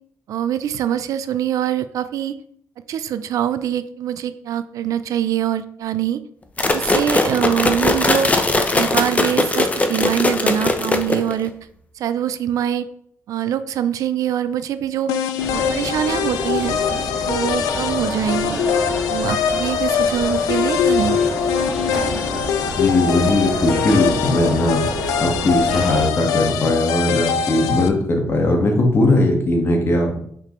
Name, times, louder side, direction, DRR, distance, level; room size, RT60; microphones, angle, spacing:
voice 1, 0.3-2.4 2.9-6.2 6.7-8.4 8.7-11.5 12.0-12.9 13.3-15.1 15.5-16.8 17.3-18.6 19.1-21.2, right 10 dB, 70° right, 12 dB, 0.4 m, -23 dB
sound 1, 6.6-11.5, left 2 dB, 25° left, 0.8 m, -19 dB
sound 2, 15.1-27.9, left 7 dB, 90° left, 0.5 m, -22 dB
sound 3, 15.4-26.1, right 1 dB, ahead, 1.8 m, -29 dB
voice 2, 22.8-24.8 25.2-30.2, left 1 dB, 40° left, 2 dB, 1.6 m, -19 dB
5.9 x 5.1 x 3.1 m, 0.65 s
cardioid pair, 75°, 6 cm